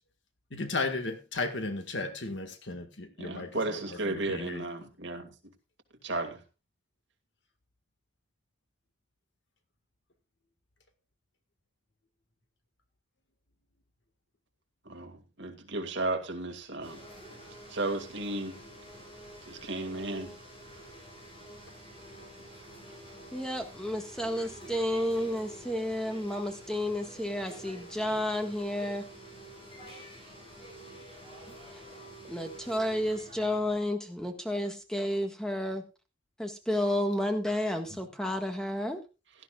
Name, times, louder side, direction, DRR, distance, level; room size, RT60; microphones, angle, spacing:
voice 1, 0.5-4.7, left 3 dB, 65° left, 1.8 m, -35 dB
voice 2, 3.2-5.3 6.0-6.4 14.9-17.0 17.7-18.5 19.5-20.3, right 2 dB, 65° right, 2.2 m, -34 dB
sound 1, 16.8-33.8, right 1 dB, 30° left, 7.0 m, -48 dB
voice 3, 23.3-29.0 31.7-31.8 32.3-35.8 36.4-39.0, left 1 dB, 5° left, 1.6 m, -31 dB
17.0 x 12.5 x 2.4 m
head